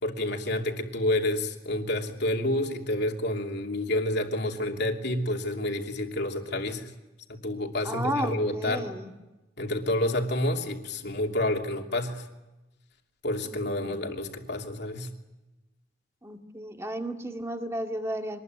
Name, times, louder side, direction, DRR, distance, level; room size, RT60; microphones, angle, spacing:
voice 1, 0.0-6.9 7.3-8.9 9.6-12.3 13.2-15.1, left 1 dB, 60° left, 2 dB, 2.9 m, -29 dB
voice 2, 7.8-9.1 13.4-13.9 16.2-18.4, equal, 15° right, 4 dB, 2.2 m, -33 dB
25.5 x 20.5 x 9.3 m, 1.0 s
head